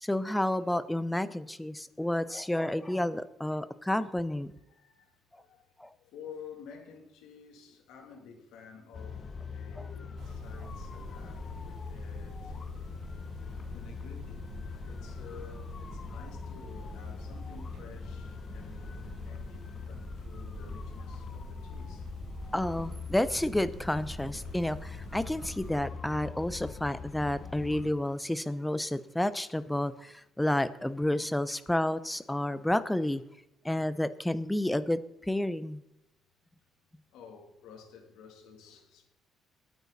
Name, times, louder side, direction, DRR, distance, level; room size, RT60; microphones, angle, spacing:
voice 1, 0.0-4.5 5.8-5.9 22.5-33.2 33.6-35.0 35.3-35.8, left 1 dB, 5° left, 0.8 m, -30 dB
voice 2, 4.6-5.6 6.0-12.6 13.2-14.4 14.8-22.1 22.4-22.5 29.1-29.2 31.1-31.3 37.1-39.1, left 6 dB, 90° left, 3.1 m, -51 dB
sound 1, 8.9-27.9, left 5 dB, 40° left, 1.1 m, -42 dB
sound 2, 10.2-25.7, right 4 dB, 75° right, 2.4 m, -47 dB
21.5 x 9.1 x 4.2 m
cardioid pair, 115°, 0 cm